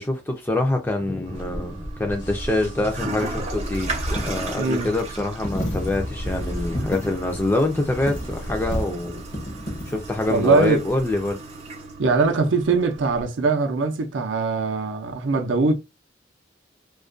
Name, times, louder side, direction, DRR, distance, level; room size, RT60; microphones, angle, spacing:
voice 1, 0.0-9.2 9.9-11.4, left 2 dB, 10° left, 0.3 m, -25 dB
Toilet flush, 1.2-13.2, right 3 dB, 35° right, 0.6 m, -37 dB
sound 1, 1.3-8.8, equal, 80° left, 0.9 m, -34 dB
Coin (dropping), 2.8-11.3, equal, 40° left, 0.6 m, -35 dB
voice 2, 4.6-4.9 10.3-10.8 12.0-15.7, right 3 dB, 80° right, 0.5 m, -21 dB
2.3 x 2.1 x 2.4 m
head